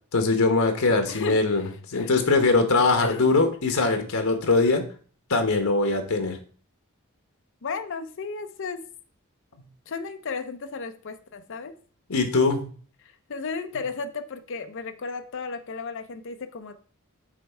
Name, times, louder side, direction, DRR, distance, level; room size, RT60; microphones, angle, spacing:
voice 1, 0.1-4.8 5.3-6.4 12.1-12.7, left 3 dB, 85° left, 6 dB, 1.1 m, -22 dB
voice 2, 1.1-2.1 3.0-3.2 7.6-8.8 9.9-11.7 13.3-16.7, left 4 dB, 65° left, 8 dB, 0.6 m, -34 dB
7.6 x 3.2 x 4.4 m, 0.42 s
head